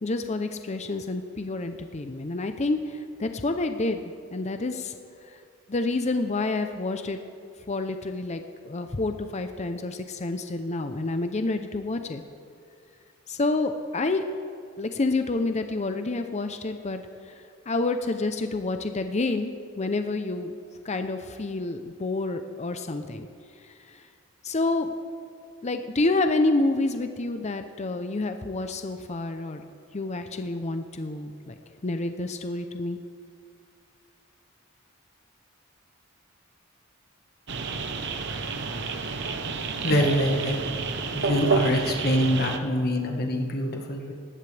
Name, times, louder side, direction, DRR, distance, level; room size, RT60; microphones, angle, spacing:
voice 1, 0.0-4.9 5.7-7.2 7.7-12.2 13.3-14.2 14.8-17.0 17.7-20.5 20.8-23.3 23.9-24.0 24.4-24.9 25.6-29.6 29.9-31.5 31.8-33.0, left 2 dB, 35° left, 8 dB, 0.7 m, -28 dB
sound 1, 37.5-42.6, right 4 dB, 60° right, 1.0 m, -29 dB
voice 2, 39.8-40.6 41.1-44.1, equal, 50° left, 2 dB, 1.5 m, -25 dB
18.5 x 16.0 x 3.4 m, 2.3 s
head